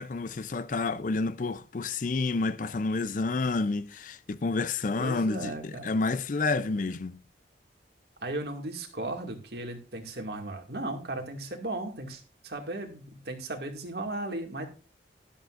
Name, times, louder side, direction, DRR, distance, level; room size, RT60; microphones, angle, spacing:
voice 1, 0.0-7.2, left 3 dB, 45° left, 0.5 m, -29 dB
voice 2, 5.0-5.9 8.2-14.7, right 2 dB, 60° right, 2.2 m, -36 dB
12.5 x 11.5 x 2.5 m
head